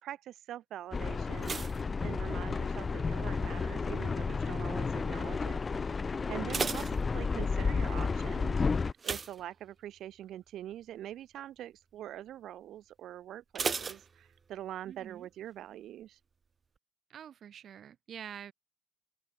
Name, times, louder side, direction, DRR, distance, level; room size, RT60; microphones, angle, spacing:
voice 1, 0.0-1.6 2.0-16.2, right 12 dB, 75° right, 3.3 m, -44 dB
sound 1, 0.9-8.9, left 4 dB, 35° left, 2.7 m, -32 dB
sound 2, 1.4-2.9 3.1-3.7 4.3-4.6 4.9-5.0 5.4-5.5 6.2-7.7 9.0-10.1 10.5-10.7 11.1-11.2 13.5-14.8 15.0-15.1, right 5 dB, 40° right, 4.7 m, -37 dB
voice 2, 6.5-6.9 14.9-15.3 17.1-18.5, right 9 dB, 60° right, 6.4 m, -46 dB
open air
cardioid pair, 90°, 0 cm